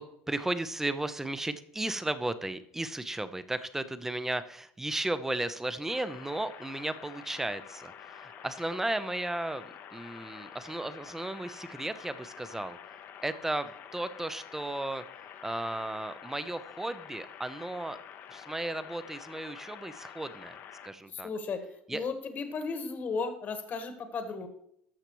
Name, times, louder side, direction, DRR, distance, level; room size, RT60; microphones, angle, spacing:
voice 1, 0.0-12.8 13.2-15.0 15.4-18.0 18.3-20.6 20.8-21.3 21.9-22.0, right 1 dB, 10° right, 12 dB, 0.6 m, -35 dB
sound 1, 5.9-20.9, left 9 dB, 55° left, 0.9 m, -48 dB
voice 2, 21.1-24.5, left 4 dB, 40° left, 8 dB, 1.4 m, -35 dB
13.5 x 5.8 x 3.1 m, 0.69 s
supercardioid pair, 105°, 4 cm